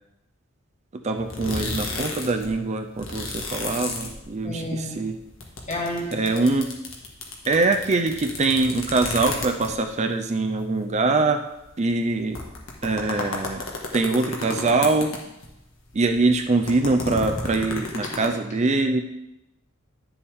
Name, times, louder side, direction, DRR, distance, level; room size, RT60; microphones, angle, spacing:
voice 1, 0.9-5.2 6.1-6.7 7.5-11.4 11.8-12.4 12.8-13.6 13.9-15.1 15.9-19.0, right 3 dB, 35° right, 6 dB, 0.5 m, -23 dB
sound 1, 1.2-2.5 2.8-4.7 5.0-10.0 10.6-10.7 10.9-11.0 11.7-11.8 12.2-15.6 15.9-18.3, left 3 dB, 90° left, 1.6 m, -32 dB
voice 2, 4.4-5.0 5.7-6.2 18.0-18.1, left 1 dB, 35° left, -1 dB, 1.8 m, -30 dB
10.0 x 7.0 x 3.6 m, 0.89 s
head